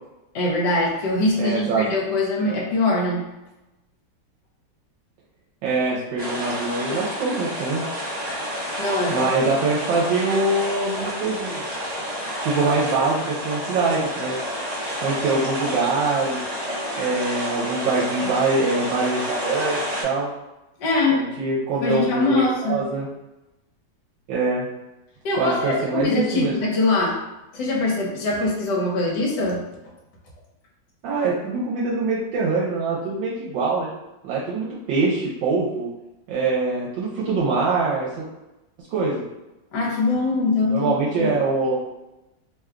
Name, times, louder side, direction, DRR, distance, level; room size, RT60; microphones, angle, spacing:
voice 1, 0.3-3.2 8.8-9.3 20.8-21.2 21.8-22.8 25.2-27.2 27.5-29.6 39.7-41.3, left 2 dB, 65° left, -2 dB, 1.4 m, -22 dB
voice 2, 1.4-1.8 5.6-7.8 9.1-11.7 12.4-14.4 15.0-16.4 17.0-20.3 21.1-22.4 22.7-23.1 24.3-24.7 25.4-26.5 31.0-33.9 34.2-35.9 36.3-38.3 38.9-39.3 40.7-41.8, right 3 dB, 80° right, -5 dB, 1.3 m, -23 dB
sound 1, 6.2-20.0, equal, 35° right, 0.7 m, -29 dB
3.3 x 2.2 x 3.6 m, 0.98 s
omnidirectional pair, 2.1 m